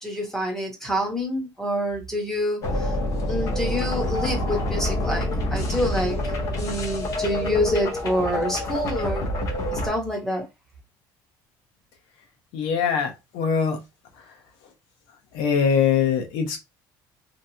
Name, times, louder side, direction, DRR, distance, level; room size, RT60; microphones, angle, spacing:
voice 1, 0.0-2.9 3.3-6.2 6.5-9.3 9.7-10.4, equal, 5° left, 0.9 m, -27 dB
sound 1, 2.6-9.9, left 1 dB, 40° left, 0.6 m, -27 dB
voice 2, 12.5-13.8 15.3-16.6, left 7 dB, 85° left, 0.8 m, -22 dB
2.9 x 2.4 x 2.7 m
cardioid pair, 175°, 8 cm